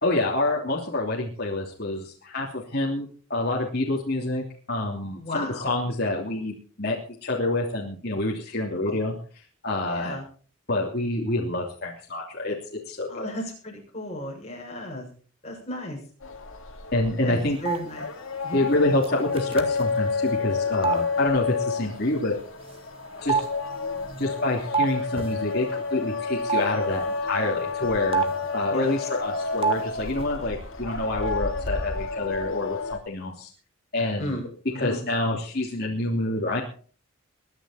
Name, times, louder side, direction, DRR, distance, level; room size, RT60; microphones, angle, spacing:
voice 1, 0.0-9.1 9.6-10.2 10.7-13.3 16.9-17.6 18.5-22.4 23.2-23.4 24.2-28.2 28.5-33.5 33.9-34.4 34.7-36.6, left 2 dB, 45° left, -3 dB, 3.0 m, -27 dB
voice 2, 5.2-5.7 8.9-9.0 9.8-10.2 13.1-15.1 15.4-16.0 17.2-18.1 18.4-18.7 28.7-28.9 34.2-34.4 34.7-35.0, left 1 dB, 30° left, -1 dB, 7.1 m, -34 dB
sound 1, 16.2-33.0, left 4 dB, 65° left, 2.5 m, -30 dB
sound 2, 17.6-17.8 19.0-19.1 19.4-19.8 20.8-21.0 22.7-22.8 23.3-24.9 25.2-25.3 26.5-26.6 28.1-28.5 29.6-29.8 30.1-30.2, right 5 dB, 25° right, 1.8 m, -26 dB
22.0 x 11.0 x 4.3 m, 0.42 s
head